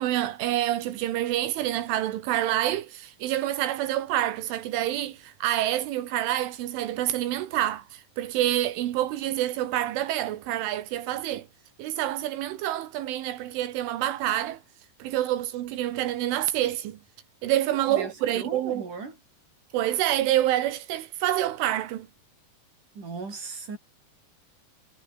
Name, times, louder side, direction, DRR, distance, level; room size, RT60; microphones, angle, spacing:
voice 1, 0.0-11.5 11.8-14.6 15.0-17.0 17.4-18.8 19.7-22.1, right 13 dB, 85° right, 4.1 m, -27 dB
voice 2, 17.7-19.2 22.9-23.8, right 4 dB, 40° right, 8.4 m, -37 dB
omnidirectional pair, 5.4 m